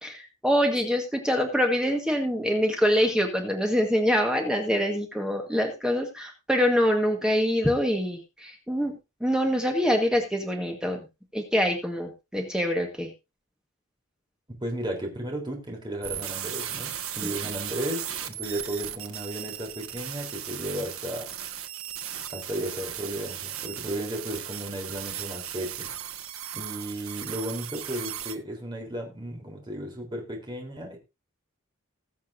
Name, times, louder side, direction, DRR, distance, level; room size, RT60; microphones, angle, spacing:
voice 1, 0.0-8.9 9.2-11.0 11.3-13.1, equal, 5° right, 2 dB, 1.5 m, -25 dB
voice 2, 14.5-21.3 22.3-25.9 26.5-31.0, right 1 dB, 20° right, 0 dB, 3.9 m, -34 dB
sound 1, 16.0-28.3, right 10 dB, 80° right, 1.4 m, -36 dB
20.5 x 7.2 x 2.7 m, 0.26 s
head